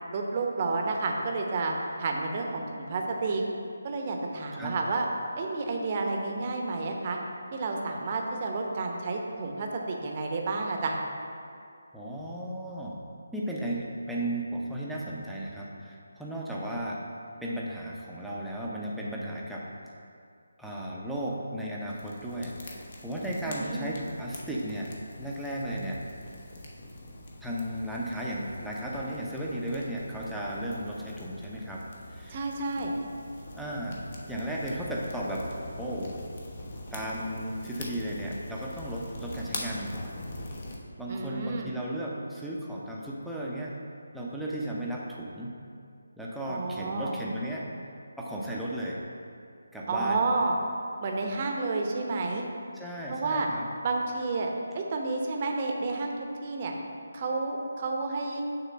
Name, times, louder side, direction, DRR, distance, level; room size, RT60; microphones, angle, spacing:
voice 1, 0.1-3.4 3.8-5.1 5.4-7.2 7.5-11.0 23.5-23.8 32.3-32.9 41.1-41.7 46.5-47.1 49.9-50.6 51.0-52.4 53.1-53.5 53.8-56.7 57.1-58.4, right 3 dB, 35° right, 1 dB, 0.8 m, -30 dB
voice 2, 11.9-12.9 13.3-17.0 17.4-19.6 20.6-24.9 25.2-26.0 27.4-31.8 32.1-32.4 33.5-34.0 34.3-35.5 35.8-36.2 36.9-40.1 41.0-43.7 44.1-45.5 46.2-47.7 48.2-49.0 49.7-50.3 52.7-53.7, right 1 dB, ahead, -6 dB, 0.7 m, -35 dB
sound 1, 21.9-40.8, left 1 dB, 40° left, 1.0 m, -43 dB
6.7 x 3.7 x 6.2 m, 2.4 s
figure-of-eight pair, 155°, 0 cm